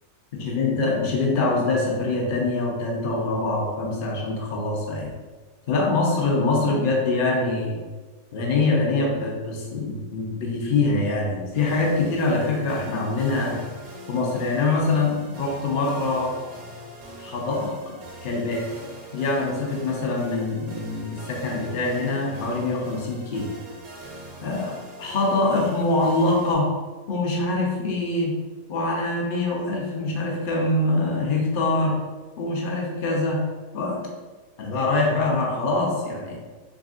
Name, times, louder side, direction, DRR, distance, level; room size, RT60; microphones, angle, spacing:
voice 1, 0.3-5.2 5.7-7.8 8.3-13.6 14.1-16.4 17.2-18.0 18.2-18.7 19.1-23.5 24.4-26.7 27.1-28.4 28.7-32.0 32.4-33.4 33.7-34.1 34.6-36.4, left 2 dB, 65° left, -2 dB, 0.5 m, -24 dB
sound 1, 11.5-26.5, right 1 dB, 80° right, 1.5 m, -42 dB
3.7 x 3.5 x 2.4 m, 1.4 s
omnidirectional pair, 1.8 m